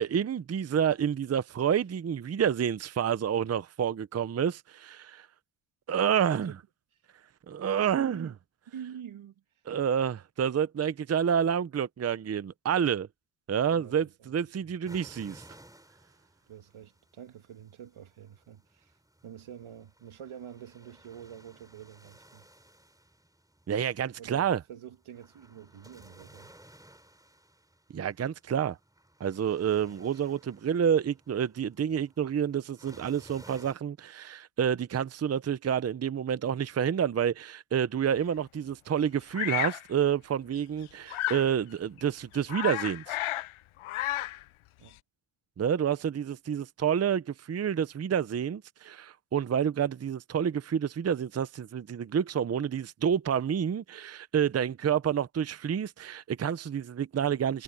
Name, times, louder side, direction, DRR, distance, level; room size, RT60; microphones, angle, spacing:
voice 1, 0.0-5.3 5.9-6.5 7.5-8.3 9.7-13.1 13.5-15.4 23.7-24.6 27.9-28.8 29.2-43.2 45.6-57.6, right 8 dB, 30° right, 0.6 m, -29 dB
voice 2, 7.9-8.3 8.7-9.4 13.7-14.3 14.6-14.7 16.5-19.0 19.2-22.5 24.2-26.5 44.8-45.0, right 9 dB, 85° right, 2.6 m, -46 dB
sound 1, 14.9-33.7, right 1 dB, 5° right, 3.9 m, -57 dB
Bird vocalization bird call bird song, 39.3-39.8 41.1-41.5 42.0-42.1 42.3-43.5 43.8-44.4, left 15 dB, 80° left, 0.6 m, -32 dB
wide cardioid pair, 140°, 48 cm